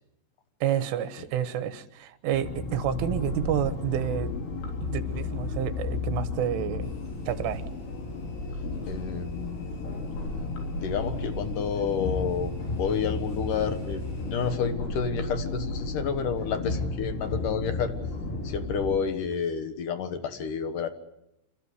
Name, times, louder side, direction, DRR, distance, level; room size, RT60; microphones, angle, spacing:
voice 1, 0.6-4.3 4.8-6.9 7.3-7.6, right 10 dB, 80° right, 11 dB, 3.8 m, -29 dB
sound 1, 2.3-19.0, left 3 dB, 85° left, 6.2 m, -33 dB
sound 2, 6.8-14.6, left 1 dB, 50° left, 8.7 m, -46 dB
voice 2, 8.9-9.7 10.7-12.5 12.8-17.9 18.4-20.9, left 6 dB, 65° left, 8 dB, 2.2 m, -30 dB
29.0 x 13.5 x 9.9 m, 0.86 s
omnidirectional pair, 5.6 m